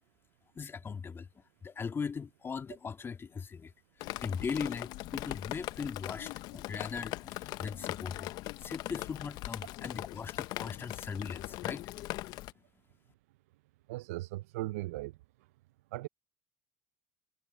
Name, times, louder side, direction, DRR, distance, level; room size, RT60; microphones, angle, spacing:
voice 1, 0.6-3.7 4.0-8.3 8.6-12.0, left 5 dB, 30° left, 1.9 m, -39 dB
Drip, 4.0-12.5, left 18 dB, 65° left, 0.6 m, -40 dB
voice 2, 13.9-15.2 15.9-16.1, right 19 dB, 80° right, 0.5 m, -38 dB
hypercardioid pair, 70°, 7 cm